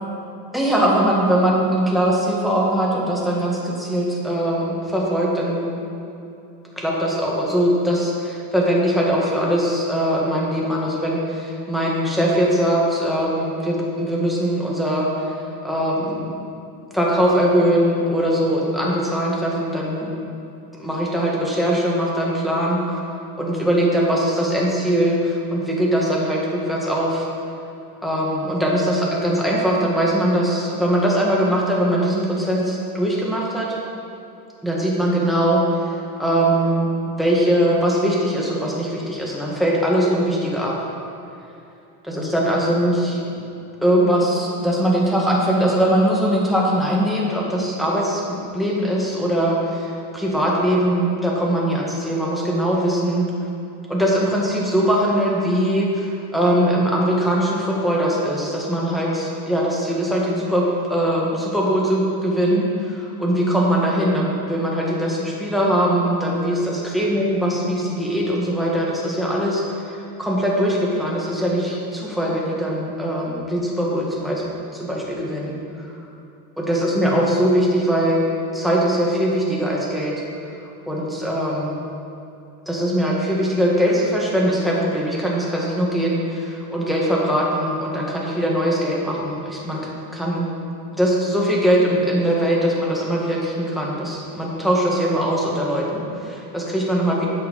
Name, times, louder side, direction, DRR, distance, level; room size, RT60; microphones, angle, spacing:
voice 1, 0.5-5.7 6.8-15.4 15.6-16.4 16.9-20.1 20.8-23.0 23.4-27.3 28.0-33.7 34.6-35.8 36.2-40.7 42.1-43.4 43.8-53.3 53.9-60.6 60.9-74.4 74.7-75.9 76.6-78.3 78.5-80.1 80.9-81.8 82.7-89.8 90.1-90.5 90.9-97.3, equal, ahead, -4 dB, 1.8 m, -21 dB
8.3 x 6.0 x 5.5 m, 2.7 s
supercardioid pair, 105°, 47 cm